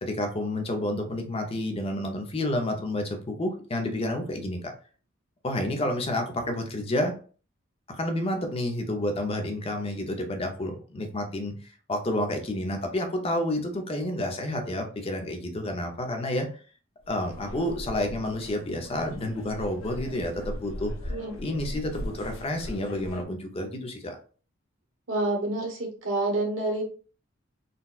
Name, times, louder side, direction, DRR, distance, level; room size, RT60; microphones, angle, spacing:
voice 1, 0.0-4.7 5.4-7.1 8.0-16.5 17.1-24.2, left 1 dB, 30° left, 4 dB, 0.6 m, -30 dB
sound 1, 17.0-23.2, left 1 dB, 85° left, 0.5 m, -39 dB
voice 2, 25.1-26.8, right 2 dB, 75° right, 1 dB, 1.1 m, -28 dB
3.9 x 2.2 x 2.3 m, 0.39 s
head